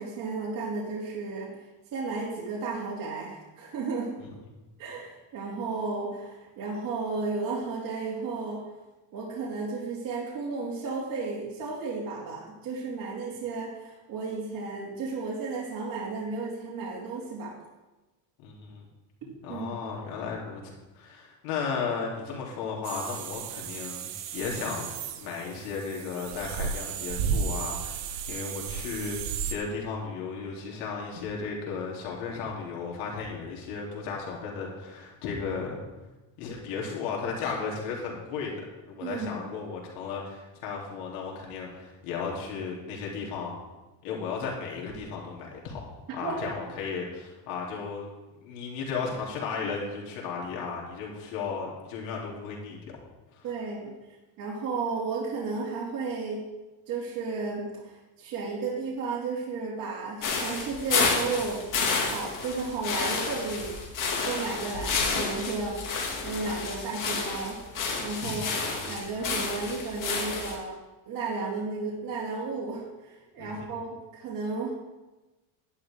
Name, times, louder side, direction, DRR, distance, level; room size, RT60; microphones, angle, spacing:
voice 1, 0.0-1.6 1.9-4.2 4.8-8.7 9.1-17.5 19.5-19.7 39.0-39.4 46.2-46.4 53.4-53.9 54.4-56.5 56.9-61.7 62.0-63.8 64.2-65.8 66.2-67.6 68.0-70.8 71.1-74.7, right 4 dB, 40° right, -4 dB, 2.7 m, -33 dB
voice 2, 18.4-18.9 19.4-24.9 25.2-29.2 29.5-35.8 36.4-38.5 38.9-43.5 44.0-48.1 48.4-52.8 53.3-53.5 68.2-68.4 73.4-73.7, left 5 dB, 75° left, -2 dB, 3.5 m, -35 dB
sound 1, 22.8-29.5, right 7 dB, 75° right, 1.3 m, -34 dB
sound 2, 60.2-70.6, left 4 dB, 40° left, 2.5 m, -30 dB
11.5 x 10.5 x 3.7 m, 1.1 s
cardioid pair, 135°, 49 cm